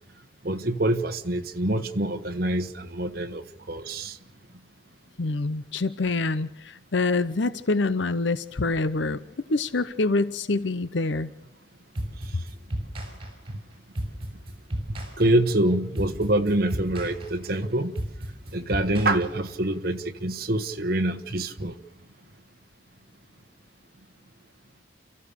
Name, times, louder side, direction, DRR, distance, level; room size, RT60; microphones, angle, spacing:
voice 1, 0.4-4.2 13.5-13.6 14.9-17.9 18.5-21.7, right 1 dB, 50° right, 6 dB, 1.3 m, -26 dB
voice 2, 5.2-9.2 9.5-11.3, left 3 dB, 75° left, 14 dB, 0.8 m, -26 dB
sound 1, 11.9-19.8, right 1 dB, 30° right, 5.8 m, -34 dB
29.5 x 14.5 x 6.8 m, 0.92 s
head